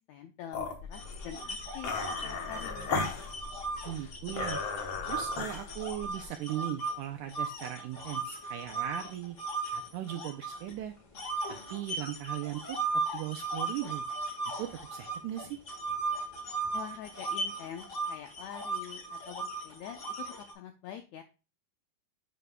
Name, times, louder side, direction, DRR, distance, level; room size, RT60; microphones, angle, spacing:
voice 1, 0.0-1.9 2.2-2.9 16.7-20.2 20.5-21.2, left 10 dB, 90° left, 6 dB, 1.6 m, -45 dB
sound 1, 0.5-6.2, left 4 dB, 60° left, 1.4 m, -36 dB
sound 2, 0.9-6.9 7.3-10.7 11.1-20.5, right 3 dB, 40° left, 1.0 m, -37 dB
voice 2, 3.9-4.6 5.1-9.4 9.7-10.9 11.5-12.8 13.1-14.0 14.6-15.6, right 12 dB, 80° right, 5 dB, 1.9 m, -38 dB
9.2 x 4.8 x 2.2 m, 0.30 s
omnidirectional pair, 3.9 m